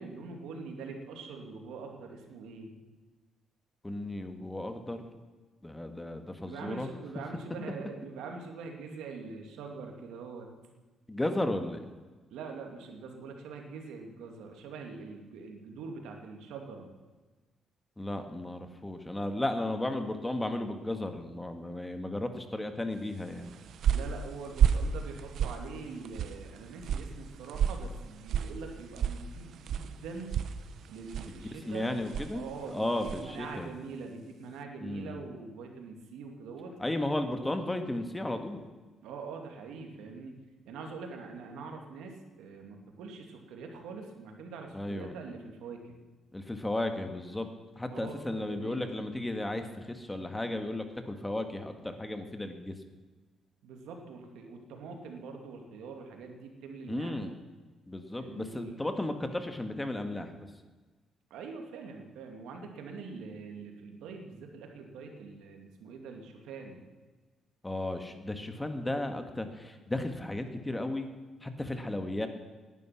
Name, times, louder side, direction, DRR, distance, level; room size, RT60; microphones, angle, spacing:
voice 1, 0.0-2.7 6.4-10.5 12.3-16.9 23.9-30.4 30.9-31.9 32.3-36.8 39.0-40.4 40.6-45.9 47.9-48.9 53.6-57.3 58.2-58.8 61.3-66.8, right 4 dB, 90° right, 3 dB, 2.5 m, -44 dB
voice 2, 3.8-5.0 5.6-6.9 11.1-11.8 18.0-23.5 31.2-31.3 31.7-33.7 34.8-35.2 36.8-38.7 44.7-45.1 46.3-47.5 47.7-52.7 56.9-57.3 57.9-60.5 67.6-71.1 71.4-72.3, left 1 dB, 10° left, 7 dB, 1.7 m, -34 dB
sound 1, 23.3-33.4, right 8 dB, 70° right, 0.9 m, -33 dB
18.0 x 11.0 x 6.0 m, 1.3 s
cardioid pair, 90°, 0 cm